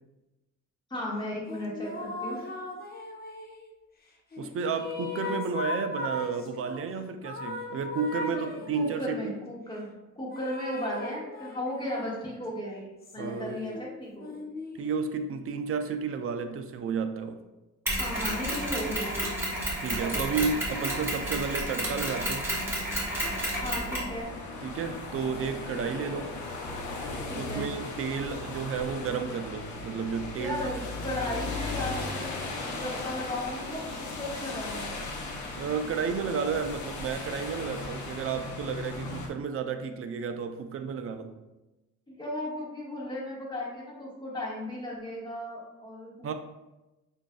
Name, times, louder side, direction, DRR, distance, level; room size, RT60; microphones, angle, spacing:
voice 1, 0.9-2.4 8.3-14.4 18.0-19.4 20.0-20.4 23.6-24.3 27.3-27.7 30.4-34.9 42.1-46.3, left 1 dB, 15° left, -5 dB, 1.5 m, -36 dB
sound 1, 1.5-3.7 4.3-6.8 7.2-9.1 10.3-12.2 13.0-15.3, left 2 dB, 30° left, 0.7 m, -38 dB
voice 2, 4.4-9.4 13.2-13.6 14.8-17.4 19.8-22.5 24.6-26.3 27.3-30.6 35.5-41.3 46.2-46.3, right 5 dB, 50° right, 7 dB, 0.5 m, -32 dB
Mechanisms, 17.9-24.1, right 1 dB, 10° right, 1.5 m, -31 dB
sound 2, 22.5-39.3, left 3 dB, 70° left, 0.7 m, -37 dB
6.0 x 2.6 x 2.3 m, 1.0 s
cardioid pair, 90°, 30 cm